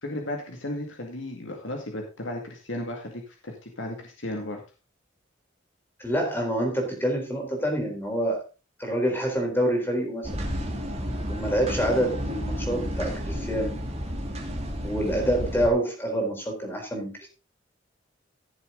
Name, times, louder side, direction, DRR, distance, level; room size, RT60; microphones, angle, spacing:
voice 1, 0.0-4.6, left 1 dB, 80° left, 2 dB, 2.3 m, -35 dB
voice 2, 6.0-8.4 8.8-10.4 11.3-13.7 14.8-17.3, right 1 dB, 10° left, 1 dB, 3.9 m, -27 dB
sound 1, 10.2-15.7, equal, 35° right, 2.6 m, -31 dB
15.5 x 7.3 x 3.9 m, 0.32 s
head